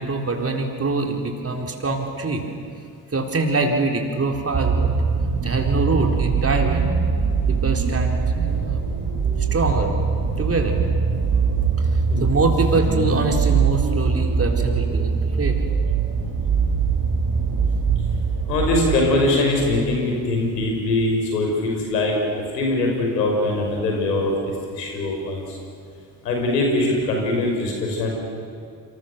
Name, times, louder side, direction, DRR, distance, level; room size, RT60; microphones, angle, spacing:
voice 1, 0.0-2.4 3.1-4.9 5.4-7.1 7.5-9.1 9.5-9.9 10.4-10.8 12.2-15.5, right 3 dB, 30° right, 2 dB, 4.1 m, -24 dB
sound 1, 4.3-19.9 20.7-20.8, right 5 dB, 45° right, 5.4 m, -22 dB
voice 2, 18.5-22.2 22.5-24.3 24.7-25.6 26.2-28.1, left 2 dB, 80° left, 1 dB, 5.4 m, -22 dB
28.5 x 26.5 x 6.9 m, 2.4 s
figure-of-eight pair, 45°, 49 cm